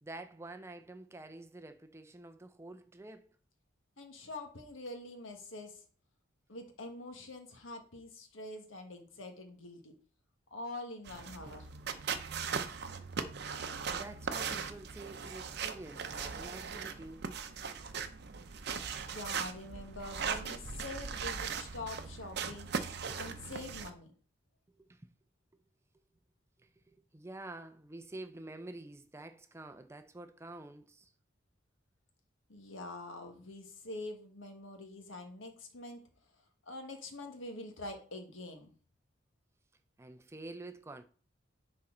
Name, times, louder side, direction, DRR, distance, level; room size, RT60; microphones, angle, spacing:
voice 1, 0.0-3.4 13.5-17.3 23.1-23.2 24.8-25.1 26.6-31.1 40.0-41.0, right 2 dB, 15° right, 0.4 m, -48 dB
voice 2, 4.0-5.8 6.5-9.9 10.5-11.7 18.9-22.7 23.1-24.1 32.5-36.1 36.7-38.7, left 2 dB, 80° left, 1.5 m, -45 dB
sound 1, 11.1-23.9, right 6 dB, 55° right, 0.7 m, -39 dB
10.0 x 4.2 x 3.8 m
head